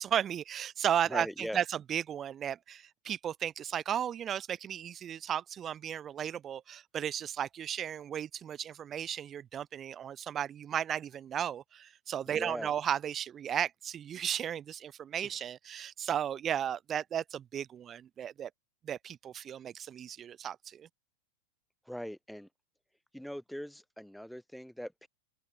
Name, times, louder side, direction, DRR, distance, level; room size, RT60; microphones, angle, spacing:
voice 1, 0.0-18.5 18.8-20.9, right 9 dB, 25° right, 0.8 m, -35 dB
voice 2, 1.1-1.6 12.3-12.7 21.9-22.5 23.1-25.1, equal, ahead, 1.4 m, -41 dB
figure-of-eight pair, 90°, 0 cm